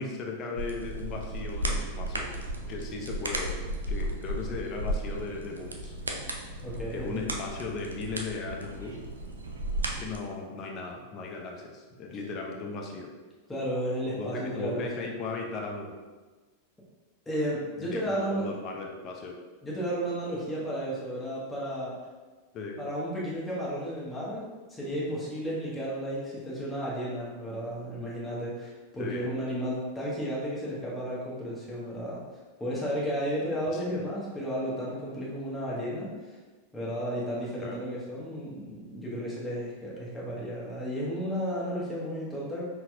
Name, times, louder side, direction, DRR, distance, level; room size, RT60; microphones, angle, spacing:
voice 1, 0.0-2.3 2.7-3.6 3.9-6.0 6.9-9.0 10.0-13.1 14.2-15.9 17.8-19.4 22.5-22.8 29.0-29.3 33.7-34.0 37.6-37.8, left 3 dB, 30° left, 0 dB, 0.6 m, -37 dB
sound 1, 0.6-10.2, right 1 dB, 75° right, 0.5 m, -34 dB
voice 2, 6.6-7.3 13.5-15.1 17.3-18.5 19.6-22.1 22.8-32.2 32.6-36.4 36.7-42.6, equal, 10° left, -7 dB, 1.0 m, -33 dB
5.7 x 2.3 x 2.6 m, 1.3 s
figure-of-eight pair, 90°, 0 cm